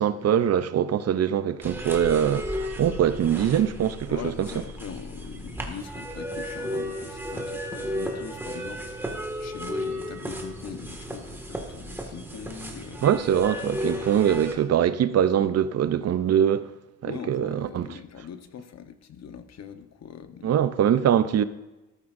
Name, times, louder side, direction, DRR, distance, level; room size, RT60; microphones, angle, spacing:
voice 1, 0.0-4.5 13.0-16.7 17.0-17.9 20.4-21.4, right 9 dB, 55° right, 0.6 m, -23 dB
sound 1, 1.6-14.6, equal, 5° right, 1.9 m, -34 dB
voice 2, 4.1-13.1 17.0-20.6, left 7 dB, 60° left, 1.0 m, -41 dB
14.0 x 13.0 x 2.6 m
cardioid pair, 115°, 31 cm